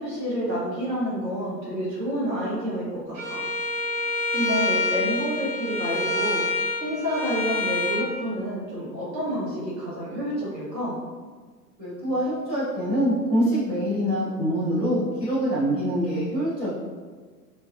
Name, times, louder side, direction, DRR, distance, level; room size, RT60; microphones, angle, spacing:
voice 1, 0.0-3.4 4.3-6.4 6.8-11.0, equal, 85° right, -7 dB, 1.3 m, -29 dB
Bowed string instrument, 3.1-8.0, left 2 dB, 50° right, 1.2 m, -27 dB
voice 2, 11.8-16.7, equal, 5° right, -20 dB, 0.3 m, -25 dB
3.7 x 2.5 x 2.6 m, 1.5 s
figure-of-eight pair, 100°, 50 cm